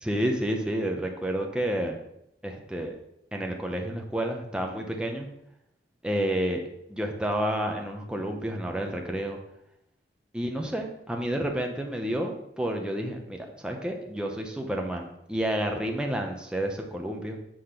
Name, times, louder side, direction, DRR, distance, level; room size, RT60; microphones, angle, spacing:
voice 1, 0.0-2.0 2.4-3.0 3.3-5.3 6.0-9.4 10.3-17.4, right 1 dB, 5° right, 2 dB, 0.8 m, -30 dB
7.7 x 4.3 x 5.0 m, 0.80 s
head